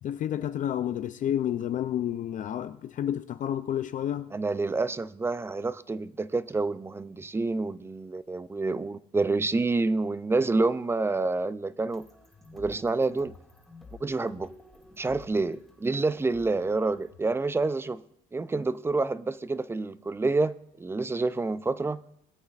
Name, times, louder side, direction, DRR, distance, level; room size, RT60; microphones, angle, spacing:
voice 1, 0.0-4.3, left 10 dB, 50° left, 0.4 m, -30 dB
voice 2, 4.3-12.1 12.5-13.3 14.0-14.5 15.0-18.0 18.3-22.0, right 3 dB, 15° right, 0.4 m, -28 dB
sound 1, 11.9-17.2, left 3 dB, ahead, 2.7 m, -52 dB
20.5 x 8.4 x 2.4 m
cardioid pair, 110°, 17 cm